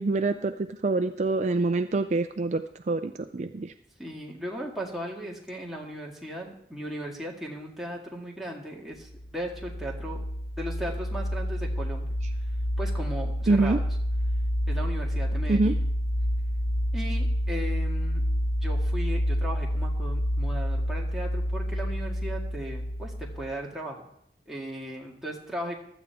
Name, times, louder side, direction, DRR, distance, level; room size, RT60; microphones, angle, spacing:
voice 1, 0.0-3.7 13.5-13.8 15.5-15.7, right 3 dB, 40° right, 9 dB, 0.4 m, -26 dB
voice 2, 4.0-10.2 10.6-12.2 12.8-13.8 14.7-15.8 16.9-18.2 18.6-24.0 24.5-25.8, right 1 dB, ahead, -3 dB, 1.9 m, -37 dB
sound 1, 9.1-23.6, equal, 25° left, 0.7 m, -28 dB
15.5 x 12.0 x 3.4 m, 0.71 s
head